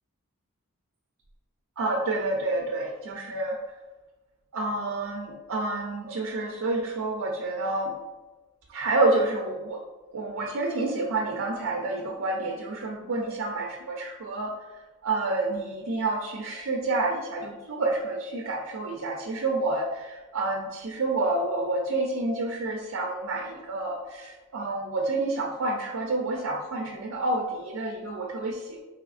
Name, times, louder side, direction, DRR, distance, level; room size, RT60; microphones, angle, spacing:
voice 1, 1.8-3.6 4.5-7.9 8.7-9.8 10.1-14.5 15.0-28.8, right 2 dB, 75° right, -1 dB, 0.5 m, -29 dB
4.9 x 2.9 x 2.4 m, 1.2 s
head